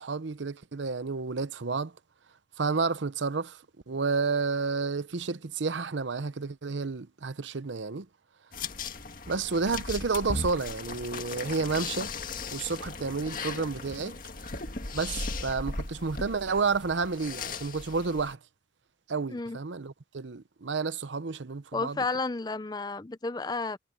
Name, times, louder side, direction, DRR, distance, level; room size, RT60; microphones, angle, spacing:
voice 1, 0.0-1.9 2.6-3.6 3.9-8.1 9.3-12.1 12.5-14.2 14.9-18.4 19.1-22.0, right 4 dB, 85° right, 0.8 m, -30 dB
sound 1, 8.5-18.3, left 3 dB, 50° left, 1.9 m, -37 dB
voice 2, 21.7-23.8, left 3 dB, 20° left, 0.5 m, -32 dB
head